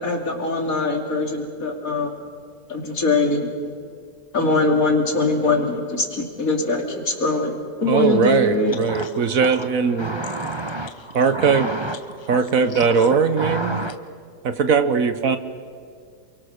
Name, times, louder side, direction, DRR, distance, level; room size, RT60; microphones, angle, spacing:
voice 1, 0.0-2.1 2.7-3.5 4.3-8.8, left 2 dB, 55° left, 2 dB, 3.2 m, -22 dB
voice 2, 7.9-10.2 11.1-11.7 12.3-13.9 14.4-15.4, right 5 dB, 60° right, 11 dB, 1.4 m, -20 dB
voice 3, 8.8-14.0, right 1 dB, 35° right, 8 dB, 0.4 m, -31 dB
28.5 x 23.0 x 6.5 m, 2.2 s
omnidirectional pair, 1.7 m